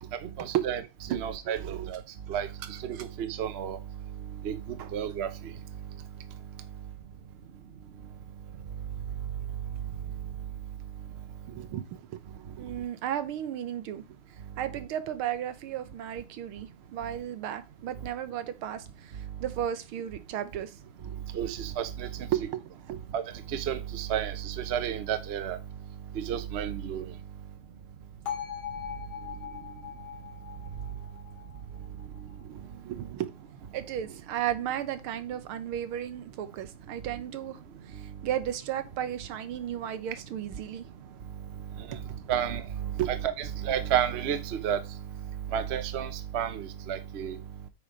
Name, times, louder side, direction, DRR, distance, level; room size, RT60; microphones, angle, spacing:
voice 1, 0.1-0.8 1.1-2.0 2.3-3.8 4.4-5.5 21.3-22.3 23.1-23.2 23.5-25.6 26.1-27.1 41.8-42.0 42.3-44.8 45.5-47.4, right 9 dB, 50° right, 0.8 m, -31 dB
voice 2, 1.1-1.9 2.9-3.0 4.8-4.9 11.5-14.0 14.6-19.1 19.4-21.2 22.3-23.1 32.4-33.3 33.7-37.6 37.9-40.8 41.9-42.0 43.0-43.1, right 11 dB, 85° right, 1.8 m, -34 dB
Bell, 28.3-32.3, left 9 dB, 70° left, 3.2 m, -40 dB
8.6 x 4.6 x 5.1 m
omnidirectional pair, 2.3 m